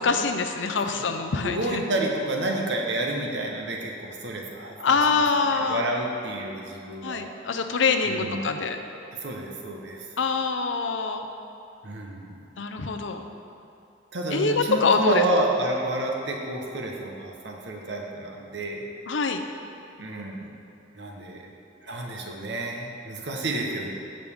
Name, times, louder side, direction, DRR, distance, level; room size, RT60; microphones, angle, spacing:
voice 1, 0.0-1.8 4.8-5.8 7.0-8.8 10.2-11.3 12.6-13.3 14.3-15.2 19.1-19.4, left 4 dB, 90° left, 6 dB, 0.6 m, -24 dB
voice 2, 1.4-7.3 8.0-8.5 9.2-10.0 11.8-12.4 14.1-18.9 20.0-20.5 20.9-21.5 21.8-23.9, right 1 dB, 70° right, 0 dB, 1.2 m, -30 dB
15.0 x 5.3 x 3.5 m, 2.8 s
head